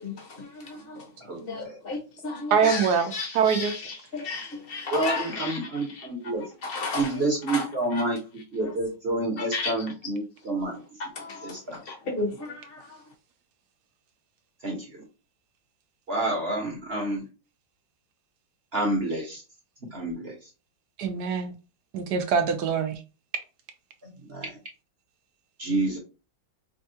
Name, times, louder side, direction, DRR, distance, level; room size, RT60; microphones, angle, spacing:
voice 1, 0.0-6.1 6.6-7.2 7.5-7.7 7.9-8.0 8.6-8.7 9.4-9.7 11.1-13.0, left 3 dB, 35° left, 1.0 m, -34 dB
voice 2, 1.2-1.8 4.9-6.5 6.9-8.2 8.5-10.8 11.4-11.8 14.6-15.0 16.1-17.2 18.7-19.4 19.8-20.5 24.0-24.6 25.6-26.0, right 2 dB, 40° right, 1.0 m, -29 dB
voice 3, 2.5-3.7 21.0-21.5 21.9-23.0, right 6 dB, 70° right, 1.0 m, -24 dB
5.2 x 2.3 x 2.7 m
omnidirectional pair, 2.1 m